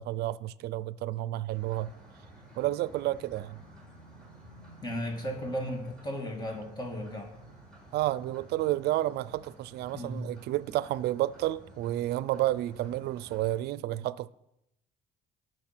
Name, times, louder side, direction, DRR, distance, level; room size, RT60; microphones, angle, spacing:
voice 1, 0.0-1.9 2.6-3.6 7.9-14.3, right 15 dB, 75° right, 0.5 m, -31 dB
sound 1, 1.5-13.6, right 1 dB, 5° left, 5.4 m, -52 dB
voice 2, 4.8-7.3 9.9-10.2, equal, 25° left, 2.6 m, -35 dB
18.0 x 6.3 x 6.1 m
cardioid pair, 110°, 17 cm